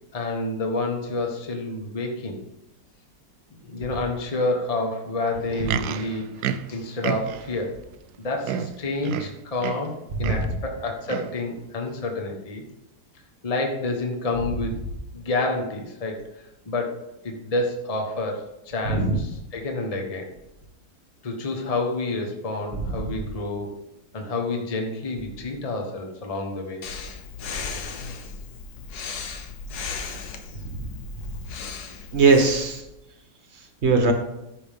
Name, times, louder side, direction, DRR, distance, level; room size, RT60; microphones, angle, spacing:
voice 1, 0.1-2.4 3.6-6.3 6.7-7.8 8.2-12.6 13.4-14.8 15.1-20.3 21.2-23.7 24.1-26.8, left 2 dB, 25° left, 2 dB, 1.2 m, -29 dB
Livestock farm animals working animals, 5.4-7.6 8.1-8.2 8.4-9.9 10.2-10.6 11.1-11.4 12.1-12.2, right 9 dB, 75° right, 1.0 m, -31 dB
voice 2, 10.2-10.5 18.9-19.2 30.6-30.9 32.1-32.8 33.8-34.1, right 4 dB, 40° right, 4 dB, 1.4 m, -20 dB
Breathing, 26.8-32.8, left 5 dB, 65° left, 1.4 m, -36 dB
14.5 x 5.6 x 3.6 m, 0.90 s
omnidirectional pair, 1.9 m